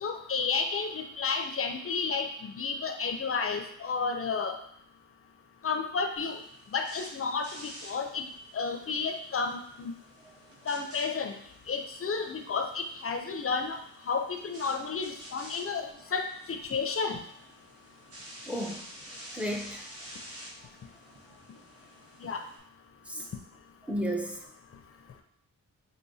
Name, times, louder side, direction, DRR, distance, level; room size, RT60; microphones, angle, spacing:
voice 1, 0.0-4.6 5.6-6.4 6.7-8.2 8.5-9.9 10.7-11.3 11.7-13.8 14.1-17.2 22.2-22.4, left 5 dB, 40° left, 6 dB, 0.5 m, -31 dB
sound 1, 6.2-22.6, right 1 dB, 45° right, 1.0 m, -50 dB
voice 2, 18.5-18.8 19.3-19.9 23.1-23.3 23.9-24.5, equal, 5° right, 1 dB, 0.5 m, -33 dB
4.9 x 2.6 x 2.7 m, 0.68 s
cardioid pair, 70°, 34 cm